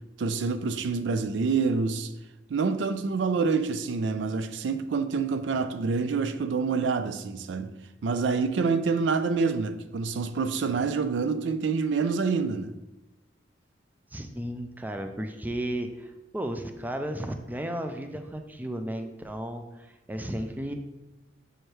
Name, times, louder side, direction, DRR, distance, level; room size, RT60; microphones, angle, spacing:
voice 1, 0.2-2.1 2.5-7.7 8.0-12.7, right 4 dB, 80° right, 0.4 m, -27 dB
voice 2, 14.1-20.7, right 1 dB, 10° right, 0.4 m, -34 dB
6.5 x 3.2 x 4.5 m
head